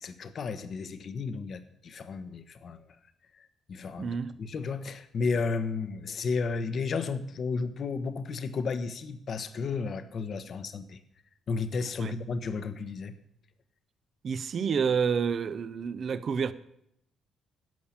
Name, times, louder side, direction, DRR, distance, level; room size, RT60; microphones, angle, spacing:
voice 1, 0.0-2.8 3.7-11.0 11.5-13.1, left 4 dB, 55° left, 1.0 m, -33 dB
voice 2, 4.0-4.3 12.0-12.1 14.2-16.5, right 6 dB, 55° right, 0.7 m, -29 dB
12.5 x 5.6 x 8.7 m
cardioid pair, 90°, 0 cm